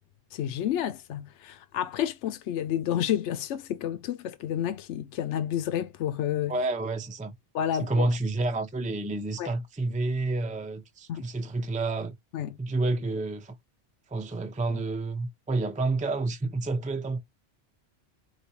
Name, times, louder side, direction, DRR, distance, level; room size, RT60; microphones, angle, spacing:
voice 1, 0.3-6.5 7.5-8.1 9.4-9.5 11.1-11.2 12.3-12.6, left 10 dB, 80° left, 0.9 m, -30 dB
voice 2, 6.5-7.3 7.8-12.1 12.6-13.5 14.1-17.2, right 2 dB, 10° right, 0.5 m, -29 dB
4.5 x 3.3 x 2.8 m
omnidirectional pair, 1.2 m